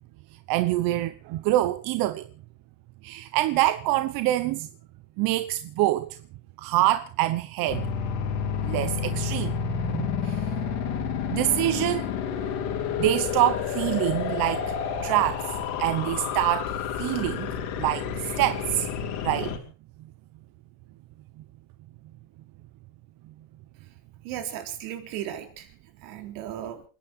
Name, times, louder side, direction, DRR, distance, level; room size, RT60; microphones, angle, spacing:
voice 1, 0.5-2.3 3.0-4.7 5.2-6.2 6.6-7.9 8.6-9.6 9.8-10.4 11.3-12.1 13.0-14.7 15.0-18.9 19.2-19.5, right 15 dB, 60° right, 1.0 m, -26 dB
sound 1, 7.7-19.6, left 7 dB, 75° left, 3.5 m, -30 dB
voice 2, 24.2-25.7 26.0-26.8, right 10 dB, 80° right, 3.8 m, -36 dB
29.0 x 10.5 x 4.4 m
cardioid pair, 155°, 40 cm